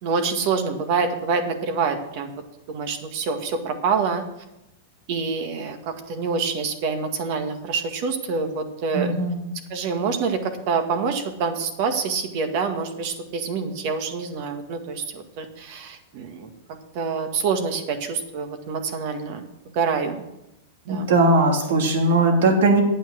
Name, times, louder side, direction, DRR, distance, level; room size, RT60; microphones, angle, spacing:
voice 1, 0.0-2.3 2.7-4.2 5.1-9.1 9.7-16.5 16.9-19.5 19.7-20.2 20.9-21.1, right 5 dB, 55° right, 6 dB, 1.9 m, -26 dB
voice 2, 8.9-9.4 20.9-22.8, right 2 dB, 75° right, 3 dB, 2.5 m, -19 dB
9.3 x 8.8 x 6.4 m, 0.88 s
hypercardioid pair, 125°, 0 cm